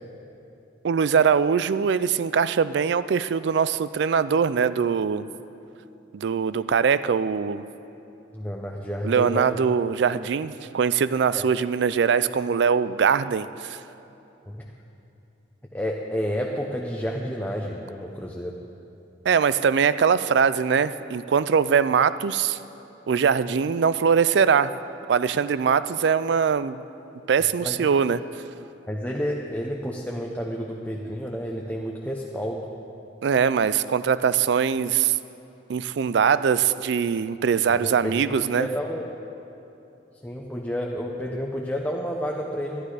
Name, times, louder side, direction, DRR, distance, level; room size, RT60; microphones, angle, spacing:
voice 1, 0.8-5.3 6.1-7.7 9.0-13.8 19.3-22.6 23.1-24.7 25.1-26.8 27.3-28.2 33.2-35.2 35.7-38.7, right 6 dB, 60° right, 15 dB, 0.3 m, -22 dB
voice 2, 8.3-9.5 11.3-11.5 14.5-14.6 15.7-18.6 27.6-27.8 28.9-32.7 37.7-38.2 38.5-39.0 40.2-42.8, equal, 10° left, -1 dB, 0.6 m, -30 dB
11.5 x 11.5 x 4.9 m, 2.8 s
head